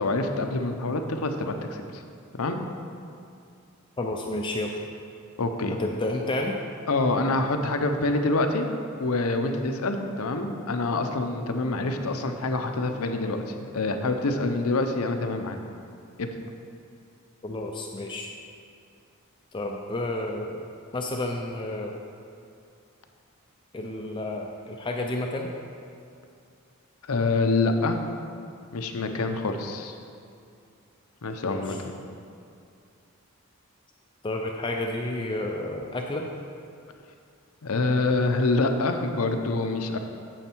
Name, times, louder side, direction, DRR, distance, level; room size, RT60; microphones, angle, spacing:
voice 1, 0.0-2.0 2.4-2.6 5.4-5.8 6.9-8.7 9.0-15.6 16.2-16.3 27.1-28.0 28.7-30.0 31.2-32.0 37.6-40.0, left 2 dB, 85° left, 6 dB, 0.7 m, -26 dB
voice 2, 4.0-4.8 5.8-6.6 17.4-18.3 19.5-20.7 20.9-21.9 23.7-25.5 31.4-31.8 34.2-36.3, left 1 dB, 20° left, 1 dB, 0.4 m, -30 dB
9.0 x 7.1 x 4.5 m, 2.4 s
head